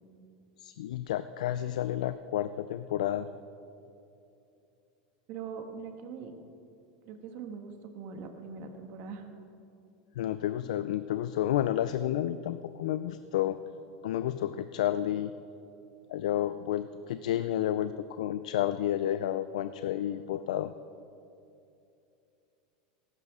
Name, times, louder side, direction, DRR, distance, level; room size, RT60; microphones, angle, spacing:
voice 1, 0.6-3.3 10.2-13.6 14.0-15.3 16.1-20.7, left 12 dB, 85° left, 12 dB, 0.4 m, -31 dB
voice 2, 5.3-6.3 7.0-9.3, right 5 dB, 55° right, 5 dB, 1.4 m, -42 dB
14.5 x 12.0 x 3.7 m, 2.6 s
supercardioid pair, 120°, 4 cm